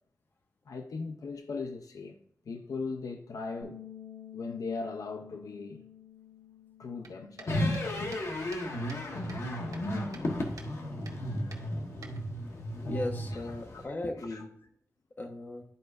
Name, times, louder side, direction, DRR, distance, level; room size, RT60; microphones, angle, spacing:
voice 1, 0.7-2.1 2.5-3.8 4.3-5.8 6.8-7.8 11.1-11.6 12.5-12.6 13.3-13.4 13.7-13.8 14.3-14.4, left 4 dB, 80° left, 0.6 m, -39 dB
Bass guitar, 3.6-9.9, left 8 dB, 20° right, 1.8 m, -52 dB
sound 1, 7.0-9.0 9.3-10.3 10.6-10.7 11.0-11.2 11.5-12.5, right 4 dB, 75° right, 1.0 m, -50 dB
sound 2, 7.5-13.8, left 1 dB, 55° left, 1.3 m, -34 dB
voice 2, 12.9-14.5 15.2-15.6, left 1 dB, 35° left, 1.1 m, -37 dB
11.5 x 4.6 x 2.5 m
wide cardioid pair, 135°, 6 cm